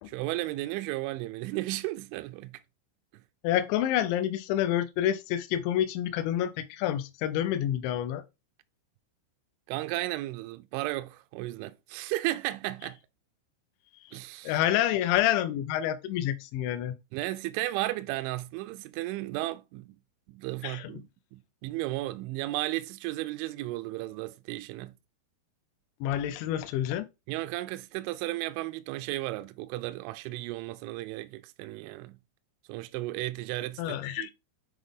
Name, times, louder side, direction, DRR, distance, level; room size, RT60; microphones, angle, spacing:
voice 1, 0.0-2.6 9.7-13.0 14.1-14.6 17.1-20.0 20.3-24.9 27.3-32.2 32.7-34.3, right 17 dB, 85° right, 2.7 m, -34 dB
voice 2, 3.4-8.2 14.1-14.2 14.4-17.0 20.6-20.9 26.0-27.1 33.8-34.3, left 11 dB, 85° left, 2.6 m, -28 dB
8.2 x 3.7 x 3.6 m
omnidirectional pair, 6.0 m